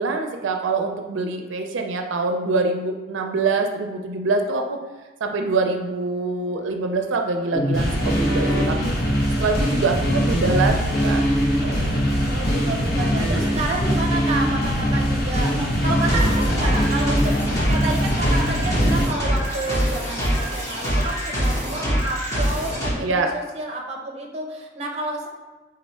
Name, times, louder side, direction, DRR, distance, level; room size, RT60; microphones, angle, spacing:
voice 1, 0.0-4.8 5.2-8.9 9.4-11.3 11.6-12.0 23.0-23.3, right 3 dB, 85° right, 4 dB, 0.4 m, -24 dB
sound 1, 5.8-8.6 11.6-12.9, right 1 dB, 75° left, 0.8 m, -38 dB
sound 2, 7.5-19.1, equal, 55° left, 1.0 m, -22 dB
voice 2, 12.3-25.3, right 2 dB, 35° right, 1 dB, 0.6 m, -30 dB
sound 3, 16.0-22.9, equal, 15° left, 0.9 m, -24 dB
3.9 x 3.1 x 4.2 m, 1.2 s
head